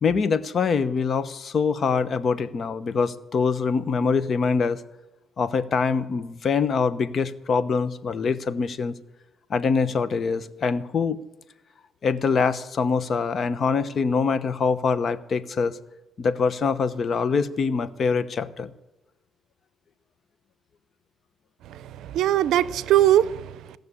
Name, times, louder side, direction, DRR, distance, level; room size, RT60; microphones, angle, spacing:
voice 1, 0.0-4.8 5.4-8.9 9.5-11.2 12.0-15.8 16.2-18.7, left 5 dB, 50° left, 14 dB, 0.9 m, -24 dB
voice 2, 21.7-23.8, right 12 dB, 80° right, 18 dB, 0.5 m, -21 dB
17.0 x 6.7 x 9.7 m, 1.0 s
cardioid pair, 90°, 0 cm